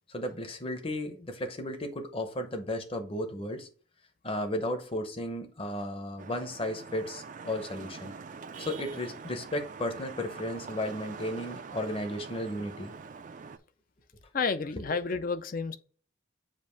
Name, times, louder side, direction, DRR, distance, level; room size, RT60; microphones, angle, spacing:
voice 1, 0.1-3.7 4.2-8.1 8.6-12.9, left 1 dB, 30° left, 0.9 m, -34 dB
Vehicle horn car horn honking / Traffic noise roadway noise, 6.2-13.6, right 5 dB, 40° right, 0.4 m, -44 dB
voice 2, 14.3-15.8, left 4 dB, 45° left, 0.5 m, -30 dB
7.5 x 2.6 x 5.1 m
head